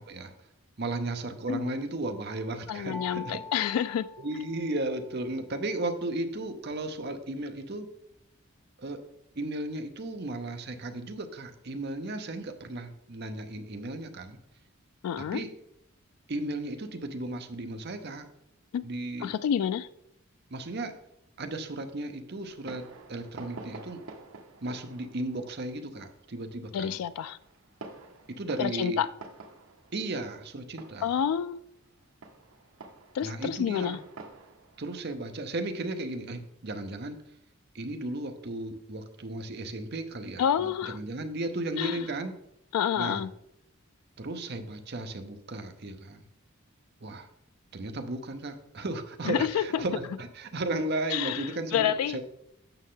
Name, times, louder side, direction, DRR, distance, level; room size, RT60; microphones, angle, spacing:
voice 1, 0.8-3.4 4.2-7.9 8.8-9.0 9.4-14.4 15.2-15.5 16.3-18.3 18.8-19.3 20.5-20.9 21.4-24.0 24.6-27.0 28.4-29.0 29.9-31.1 33.2-34.0 34.8-37.2 37.7-40.4 40.8-42.4 43.0-43.3 44.2-46.2 47.0-47.3 47.7-52.2, right 2 dB, 50° right, 0.8 m, -35 dB
voice 2, 2.7-4.1 15.0-15.4 18.7-18.8 19.2-19.9 26.7-27.4 28.6-29.1 31.0-31.6 33.1-34.0 40.4-41.0 41.8-42.1 42.7-43.3 49.2-49.8 51.1-52.2, left 8 dB, 90° left, 0.3 m, -28 dB
sound 1, 2.9-5.1, left 3 dB, 5° left, 0.3 m, -44 dB
Fireworks, 22.4-36.6, right 3 dB, 75° right, 1.1 m, -49 dB
8.9 x 6.5 x 3.8 m
head